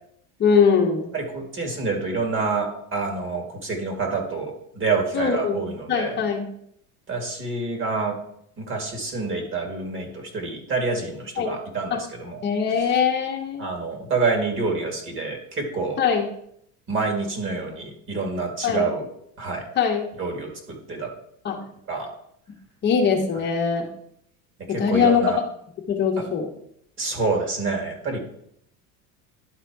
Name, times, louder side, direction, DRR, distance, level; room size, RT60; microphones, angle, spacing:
voice 1, 0.4-1.1 5.1-6.5 11.4-11.5 11.9-12.0 12.4-13.7 16.0-16.3 18.6-18.9 19.8-20.1 21.4-21.6 22.8-23.9 24.7-25.3 25.9-26.5, left 6 dB, 30° left, 1 dB, 1.0 m, -22 dB
voice 2, 1.1-6.2 7.1-8.2 8.6-12.4 13.6-16.0 16.9-19.1 19.4-19.7 20.2-21.1 21.9-22.1 24.7-25.4 27.0-28.2, right 4 dB, 35° right, 3 dB, 2.1 m, -27 dB
11.0 x 4.0 x 4.6 m, 0.72 s
supercardioid pair, 135°, 35 cm